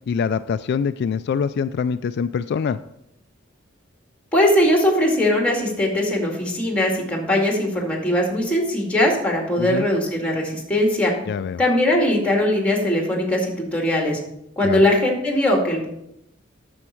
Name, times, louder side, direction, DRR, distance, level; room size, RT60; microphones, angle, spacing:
voice 1, 0.1-2.8 9.6-9.9 11.3-11.6 14.6-14.8, left 6 dB, 55° left, 12 dB, 0.3 m, -24 dB
voice 2, 4.3-11.1 11.6-14.2 14.6-15.9, left 1 dB, 5° left, 0 dB, 2.2 m, -20 dB
9.7 x 7.2 x 4.5 m, 0.80 s
head